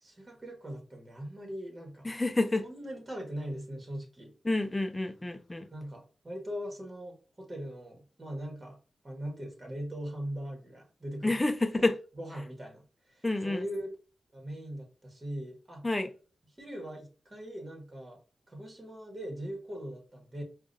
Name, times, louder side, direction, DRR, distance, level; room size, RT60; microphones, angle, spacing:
voice 1, 0.0-2.1 2.6-4.3 5.7-8.8 9.0-11.4 11.7-11.9 12.2-13.9 14.3-15.9 16.6-18.2 18.5-20.4, equal, 35° right, 1.5 m, -40 dB
voice 2, 2.0-2.6 4.4-5.7 11.2-12.0 13.2-13.6 15.8-16.1, left 2 dB, 20° left, 0.5 m, -28 dB
4.7 x 2.5 x 2.7 m
cardioid pair, 55°, 0 cm